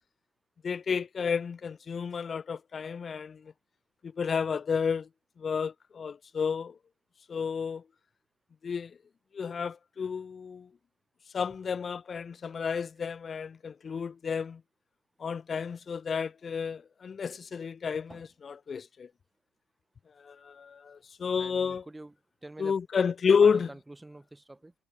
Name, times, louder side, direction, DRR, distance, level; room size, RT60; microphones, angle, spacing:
voice 1, 0.6-3.4 4.0-5.1 5.4-6.7 7.3-7.8 8.6-8.9 9.3-10.7 11.3-14.6 15.2-18.1 18.4-19.1 20.2-21.8 22.6-23.7, left 6 dB, 20° left, 1.2 m, -30 dB
voice 2, 21.4-22.2 22.4-22.8 23.4-24.7, right 2 dB, 5° right, 3.9 m, -46 dB
cardioid pair, 175°, 0 cm